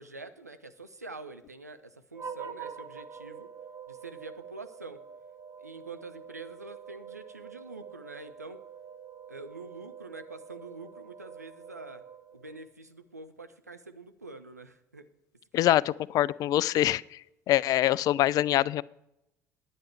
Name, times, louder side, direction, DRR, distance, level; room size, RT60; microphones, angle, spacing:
voice 1, 0.0-3.5 3.9-5.0 5.6-8.6 9.3-12.0 12.3-15.1 15.7-15.8, right 3 dB, 90° right, 10 dB, 0.5 m, -46 dB
sound 1, 2.1-12.7, right 7 dB, 35° right, 0.9 m, -46 dB
voice 2, 16.1-17.2 17.5-18.8, left 14 dB, 45° left, 22 dB, 0.3 m, -24 dB
10.5 x 9.1 x 4.6 m, 0.85 s
figure-of-eight pair, 60°, 9 cm